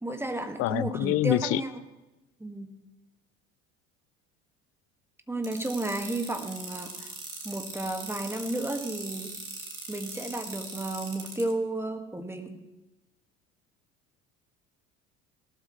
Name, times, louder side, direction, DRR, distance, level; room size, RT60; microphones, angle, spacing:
voice 1, 0.0-1.7 2.4-2.8 5.3-7.1 7.4-9.3 9.9-12.6, right 2 dB, 5° right, 6 dB, 1.7 m, -33 dB
voice 2, 0.6-1.6, left 15 dB, 35° left, 18 dB, 0.5 m, -25 dB
sound 1, 5.4-11.4, right 4 dB, 85° right, 2.5 m, -40 dB
18.0 x 12.5 x 3.2 m, 1.0 s
figure-of-eight pair, 65°, 42 cm